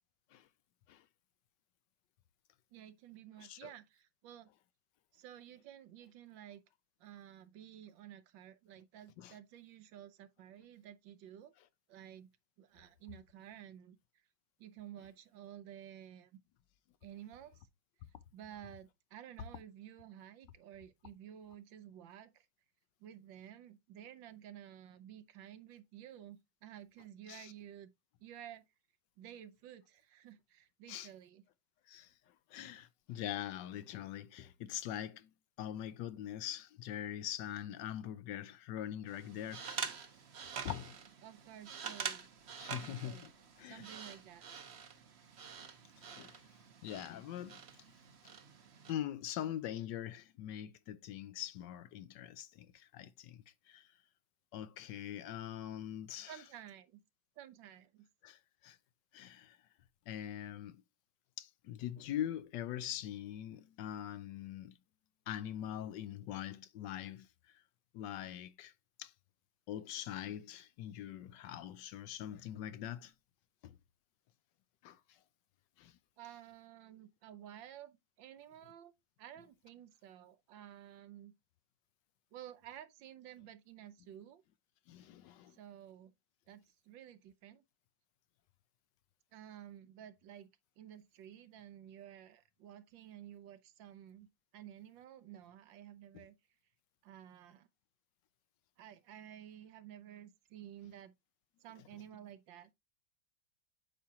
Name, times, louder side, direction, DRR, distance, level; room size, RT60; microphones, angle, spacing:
voice 1, 2.7-4.5 5.1-6.6 7.0-11.5 11.9-12.3 12.6-14.0 14.6-16.3 17.0-17.6 18.3-22.5 23.0-27.9 28.2-28.6 29.2-31.4 41.2-42.3 42.8-43.3 43.7-44.5 56.3-57.0 57.4-58.1 76.2-78.9 79.2-81.3 82.3-84.4 85.5-86.1 86.5-87.6 89.3-90.5 90.8-94.3 94.5-96.4 97.0-97.7 98.8-101.1 101.6-102.7, right 11 dB, 75° right, 1.5 m, -53 dB
voice 2, 3.4-3.7 9.2-9.3 27.3-27.5 30.9-31.1 31.9-35.3 35.6-39.8 40.6-41.0 42.6-43.3 43.6-43.9 46.0-47.6 48.9-53.9 54.5-56.4 58.2-58.8 59.1-59.6 60.1-60.8 61.4-64.8 65.3-67.6 67.9-68.7 69.0-69.1 69.7-73.1 73.6-73.8 74.8-75.2 75.8-76.0 84.9-85.6, left 11 dB, 75° left, 1.2 m, -43 dB
sound 1, 39.1-48.9, right 7 dB, 45° right, 0.9 m, -46 dB
8.6 x 5.9 x 2.8 m
omnidirectional pair, 2.1 m